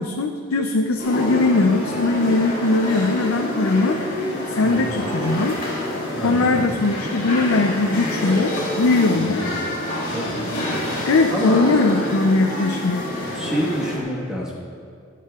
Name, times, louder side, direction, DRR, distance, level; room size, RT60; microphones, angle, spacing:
voice 1, 0.0-4.1 4.5-5.6 6.2-9.4 11.1-13.0, left 3 dB, 80° left, 4 dB, 0.5 m, -20 dB
sound 1, 1.0-14.0, left 1 dB, 50° left, 2.9 m, -27 dB
voice 2, 6.2-6.8 9.1-9.5 10.1-10.4 10.9-11.7 12.3-12.4 13.3-14.5, equal, 5° right, -5 dB, 1.4 m, -28 dB
23.5 x 8.4 x 2.4 m, 2.3 s
head